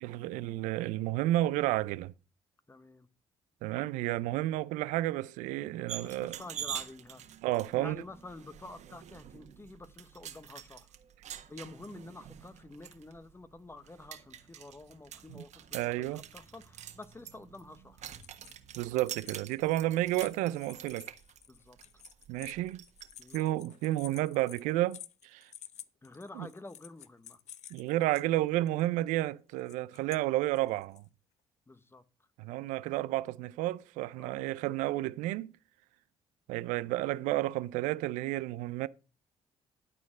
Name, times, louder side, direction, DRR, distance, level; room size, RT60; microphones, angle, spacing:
voice 1, 0.0-2.1 3.6-6.4 7.4-8.0 15.3-15.4 15.7-16.2 18.8-21.1 22.3-22.8 23.3-25.5 26.4-26.5 27.7-31.0 32.4-35.5 36.5-38.9, right 16 dB, 80° right, 0.5 m, -31 dB
voice 2, 2.7-3.1 5.9-7.2 7.8-10.9 11.5-18.0 21.5-21.8 23.2-23.5 26.0-27.4 31.7-32.0 34.2-34.5 36.9-37.1, left 2 dB, 20° left, 1.1 m, -49 dB
sound 1, 5.9-23.3, right 10 dB, 65° right, 1.4 m, -46 dB
sound 2, 18.2-18.7 19.0-28.2 28.7-28.8 29.6-30.2 30.5-31.0, left 11 dB, 65° left, 0.6 m, -52 dB
12.0 x 4.4 x 6.3 m
supercardioid pair, 60°, 13 cm